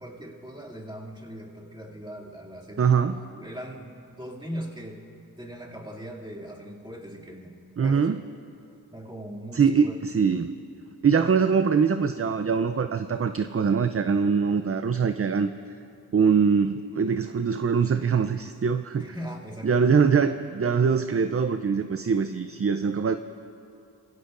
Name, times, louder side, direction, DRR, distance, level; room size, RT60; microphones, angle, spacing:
voice 1, 0.0-2.9 3.3-5.0 5.4-8.0 8.9-10.0 19.0-20.0, equal, 10° right, -4 dB, 2.6 m, -40 dB
voice 2, 2.8-3.2 7.8-8.2 9.5-10.6 11.0-15.5 16.1-19.1 19.6-23.2, right 6 dB, 35° right, 9 dB, 0.5 m, -23 dB
23.0 x 16.0 x 2.6 m, 2.6 s
cardioid pair, 40°, 39 cm